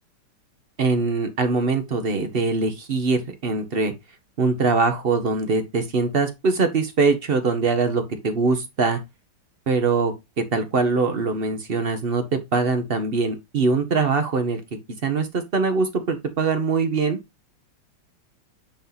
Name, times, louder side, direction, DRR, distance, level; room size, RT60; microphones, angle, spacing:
voice 1, 0.8-3.9 4.4-9.0 9.7-10.1 10.5-12.2 12.5-14.6 15.0-17.2, right 4 dB, 45° right, 0.8 m, -22 dB
8.4 x 2.8 x 3.9 m
omnidirectional pair, 1.9 m